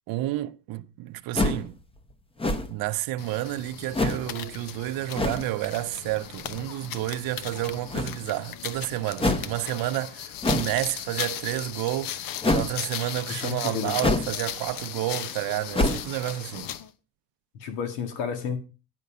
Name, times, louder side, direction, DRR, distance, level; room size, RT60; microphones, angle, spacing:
voice 1, 0.1-1.8 2.7-16.7, right 16 dB, 70° right, 0.7 m, -30 dB
sound 1, 1.3-1.7 2.4-2.9 3.9-4.3 5.1-5.5 7.9-8.4 9.2-9.5 10.4-10.8 12.4-12.7 14.0-14.4 14.7-14.8 15.7-16.1, left 2 dB, 15° left, 0.9 m, -25 dB
sound 2, 3.2-16.9, left 10 dB, 65° left, 0.9 m, -37 dB
voice 2, 13.3-13.9 17.6-18.6, left 7 dB, 85° left, 2.1 m, -31 dB
9.6 x 5.4 x 6.6 m
cardioid pair, 125°, 36 cm